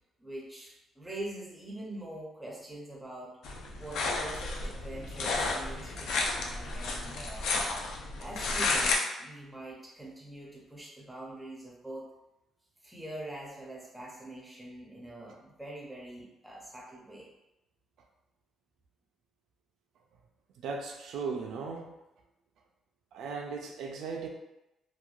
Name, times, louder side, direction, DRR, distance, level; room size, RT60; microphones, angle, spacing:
voice 1, 0.2-3.4 3.8-7.5 8.2-12.1 12.8-17.3, right 1 dB, 5° right, -4 dB, 0.5 m, -44 dB
sound 1, 3.4-9.0, left 3 dB, 70° left, 0.4 m, -32 dB
voice 2, 20.6-21.9 23.1-24.3, right 5 dB, 65° right, 1 dB, 0.3 m, -37 dB
3.0 x 2.2 x 2.3 m, 0.93 s
cardioid pair, 180°, 0 cm